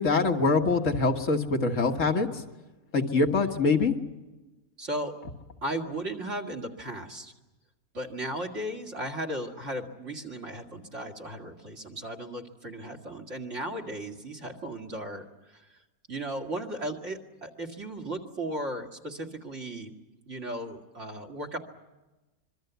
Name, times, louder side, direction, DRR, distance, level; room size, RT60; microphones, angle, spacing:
voice 1, 0.0-2.4 2.9-4.0, left 4 dB, 60° left, 4 dB, 1.8 m, -24 dB
voice 2, 4.8-5.1 5.6-7.3 7.9-15.7 16.1-19.9 20.3-21.6, right 1 dB, 55° right, 7 dB, 2.5 m, -36 dB
26.0 x 23.0 x 8.1 m, 1.1 s
omnidirectional pair, 1.5 m